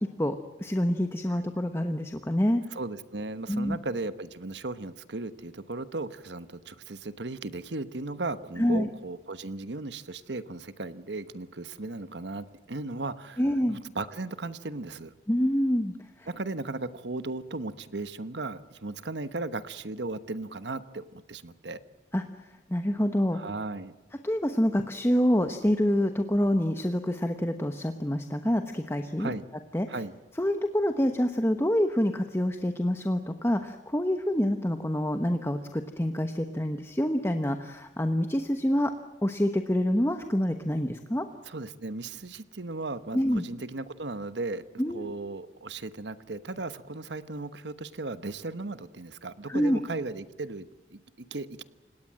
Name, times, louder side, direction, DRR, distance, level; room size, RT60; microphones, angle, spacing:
voice 1, 0.2-2.6 3.5-3.8 8.6-8.9 13.4-13.8 15.3-16.3 22.1-22.2 22.7-23.4 24.2-29.3 29.7-29.9 30.4-38.9 39.2-41.3 43.1-43.4 44.8-45.1 49.5-49.8, equal, 15° left, 6 dB, 1.1 m, -26 dB
voice 2, 2.7-13.4 13.7-15.1 16.3-21.8 23.3-23.9 29.2-29.5 29.9-30.1 41.5-44.6 44.9-51.6, right 2 dB, 80° right, 13 dB, 1.2 m, -36 dB
29.0 x 18.0 x 7.6 m, 1.2 s
head